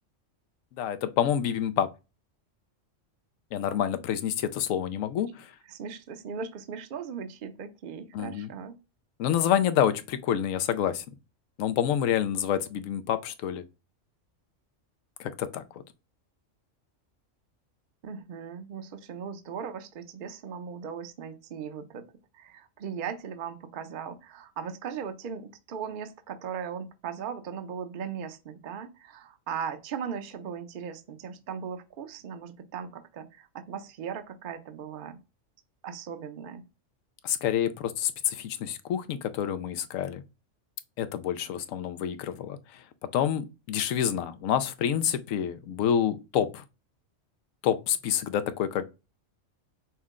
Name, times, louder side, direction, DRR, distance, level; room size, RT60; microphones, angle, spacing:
voice 1, 0.8-1.9 3.5-5.5 8.1-8.5 9.2-11.0 11.6-13.6 15.2-15.8 37.2-40.2 41.0-42.8 43.1-46.6 47.6-48.8, left 9 dB, 90° left, 1.0 m, -28 dB
voice 2, 5.7-8.8 18.0-22.1 22.3-35.2 35.8-36.6, right 7 dB, 50° right, 0.7 m, -38 dB
5.8 x 2.0 x 3.6 m
omnidirectional pair, 1.3 m